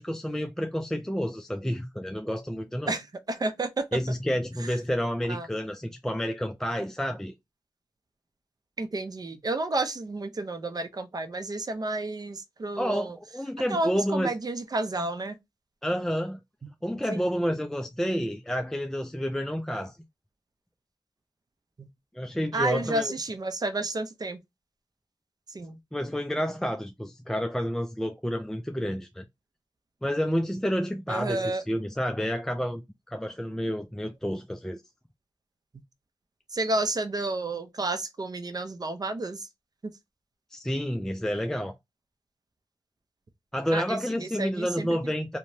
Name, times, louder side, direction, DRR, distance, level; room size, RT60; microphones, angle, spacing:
voice 1, 0.0-2.9 3.9-7.3 12.8-14.3 15.8-16.4 16.8-20.0 22.1-23.1 25.9-29.2 30.0-32.8 33.1-34.8 40.5-41.7 43.5-45.4, equal, 5° left, 0.4 m, -29 dB
voice 2, 2.9-4.0 4.6-4.8 5.3-5.5 8.8-13.2 13.7-15.4 16.6-16.7 17.1-17.2 21.8-21.9 22.5-24.4 25.5-25.8 31.1-31.6 36.5-39.5 39.8-39.9 43.7-45.0, right 2 dB, 45° right, 0.6 m, -31 dB
2.9 x 2.1 x 2.6 m
cardioid pair, 45°, 9 cm